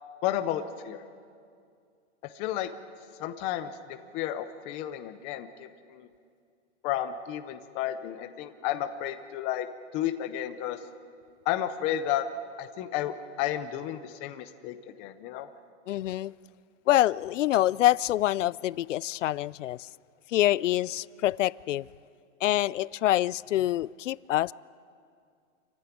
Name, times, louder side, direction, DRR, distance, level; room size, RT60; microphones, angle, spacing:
voice 1, 0.2-1.0 2.3-2.7 3.2-6.1 6.8-9.7 9.9-10.8 11.5-12.3 12.6-15.5, left 11 dB, 20° left, 0.5 m, -32 dB
voice 2, 15.9-16.3 16.9-19.9 20.3-21.9 22.4-24.5, left 14 dB, 90° left, 0.6 m, -26 dB
27.0 x 15.5 x 9.9 m
supercardioid pair, 165°, 36 cm